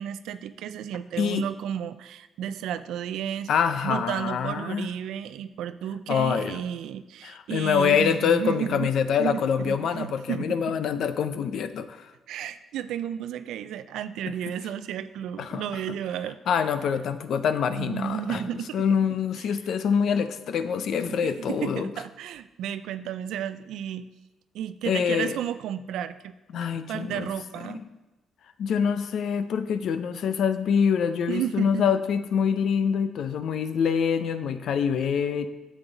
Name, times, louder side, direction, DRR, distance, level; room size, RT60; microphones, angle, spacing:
voice 1, 0.0-3.5 3.8-8.9 9.2-10.8 12.3-16.4 17.7-18.8 21.2-24.1 24.5-26.3 26.7-27.8 31.3-31.8, right 9 dB, 85° right, 13 dB, 0.4 m, -33 dB
voice 2, 3.5-4.9 6.1-6.6 7.2-12.1 15.4-15.8 16.5-18.4 18.7-21.9 24.9-25.3 26.5-27.3 27.7-27.8 28.6-35.5, left 7 dB, 70° left, 11 dB, 0.6 m, -25 dB
9.6 x 7.4 x 4.0 m, 1.1 s
cardioid pair, 90°, 0 cm